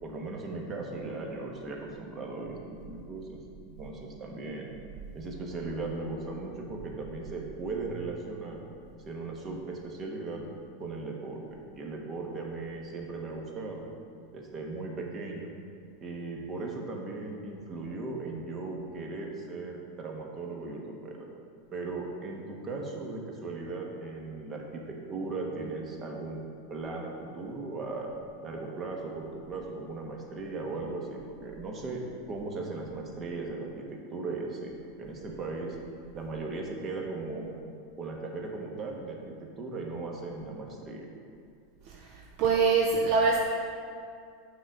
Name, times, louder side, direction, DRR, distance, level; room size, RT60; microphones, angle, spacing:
voice 1, 0.0-3.4 3.8-4.7 5.1-8.6 8.9-10.4 10.8-13.9 14.3-15.5 16.0-21.3 21.7-26.4 26.7-28.1 28.4-32.0 32.3-35.8 36.1-37.5 38.0-41.1, right 3 dB, 35° right, 0 dB, 1.2 m, -37 dB
voice 2, 41.9-43.4, right 4 dB, 55° right, 0 dB, 0.6 m, -25 dB
6.2 x 3.9 x 6.0 m, 2.3 s
hypercardioid pair, 95°, 0 cm